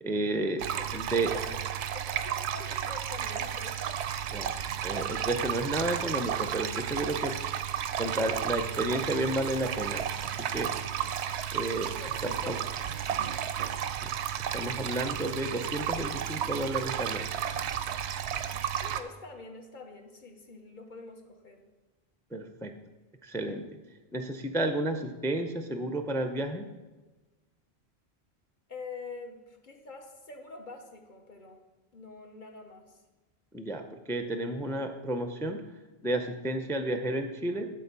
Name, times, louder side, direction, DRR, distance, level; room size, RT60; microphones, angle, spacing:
voice 1, 0.0-0.7 0.9-1.3 4.3-4.5 4.8-7.3 8.0-10.7 11.5-11.9 12.2-12.6 14.0-14.1 14.5-17.3 22.3-22.7 23.2-23.6 24.1-26.7 33.5-35.6 36.0-37.7, right 1 dB, 5° left, 6 dB, 0.4 m, -31 dB
sound 1, 0.6-19.0, right 9 dB, 85° right, 0.9 m, -33 dB
voice 2, 0.7-1.7 1.9-4.0 12.0-12.8 18.8-21.7 28.7-31.6 31.9-33.0, left 3 dB, 50° left, 4 dB, 1.2 m, -45 dB
Engine / Drill, 9.5-16.1, left 1 dB, 70° left, 2.4 m, -57 dB
10.5 x 4.5 x 6.8 m, 1.2 s
omnidirectional pair, 1.1 m